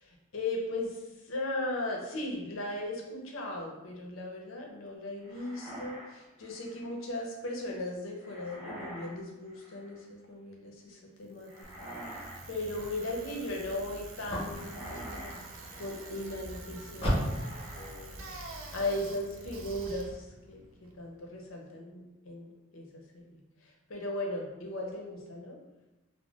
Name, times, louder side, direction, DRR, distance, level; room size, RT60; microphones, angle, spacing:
voice 1, 0.0-11.9 12.5-15.4 15.7-18.3 18.7-25.6, left 1 dB, 75° left, 0 dB, 0.6 m, -38 dB
sound 1, 5.2-6.9 8.2-9.2 9.4-10.0 11.4-12.4 12.7-13.2 14.4-16.1 17.2-18.1 18.4-18.8, right 1 dB, 15° right, 0.7 m, -47 dB
Bicycle, 11.3-21.4, right 3 dB, 75° right, 0.4 m, -49 dB
sound 2, 11.6-20.2, equal, 30° left, 0.9 m, -39 dB
3.7 x 2.0 x 2.3 m, 1.0 s
head